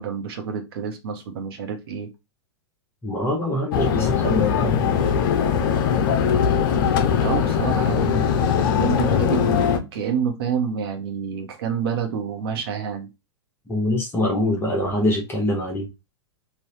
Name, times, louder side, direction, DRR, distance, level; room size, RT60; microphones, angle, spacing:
voice 1, 0.0-2.1 7.2-13.1, right 7 dB, 55° right, 1.2 m, -28 dB
voice 2, 3.0-4.8 13.7-15.9, left 1 dB, 15° left, 1.0 m, -24 dB
sound 1, 3.7-9.8, left 7 dB, 45° left, 0.6 m, -20 dB
3.9 x 2.6 x 3.2 m
figure-of-eight pair, 95°, 15 cm